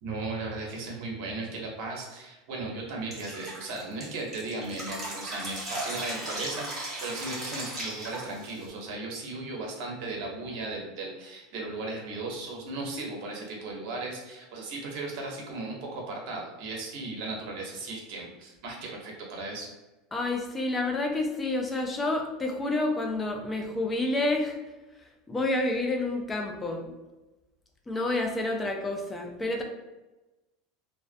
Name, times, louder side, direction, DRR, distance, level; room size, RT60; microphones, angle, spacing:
voice 1, 0.0-19.7, right 2 dB, 60° right, 0 dB, 0.7 m, -36 dB
Drip, 3.1-8.7, right 1 dB, 20° right, 0.8 m, -36 dB
voice 2, 20.1-24.6 25.3-26.9 27.9-29.6, left 2 dB, 10° left, 2 dB, 0.3 m, -29 dB
2.3 x 2.1 x 2.5 m, 1.1 s
supercardioid pair, 160°, 0 cm